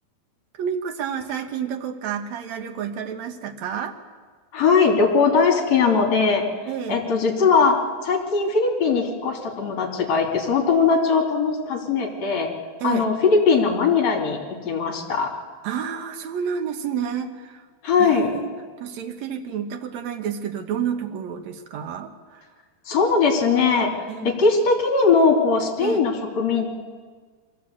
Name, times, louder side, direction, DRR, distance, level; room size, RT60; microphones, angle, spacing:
voice 1, 0.6-3.9 6.7-7.0 12.8-13.1 15.6-17.6 18.0-22.4 24.1-24.3 25.8-26.1, right 8 dB, 70° right, 5 dB, 1.7 m, -30 dB
voice 2, 4.5-6.4 6.9-7.8 8.0-12.5 12.8-15.3 17.8-18.3 22.9-23.9 24.2-26.7, left 5 dB, 45° left, 0 dB, 3.8 m, -20 dB
23.5 x 15.5 x 8.4 m, 1.5 s
omnidirectional pair, 4.8 m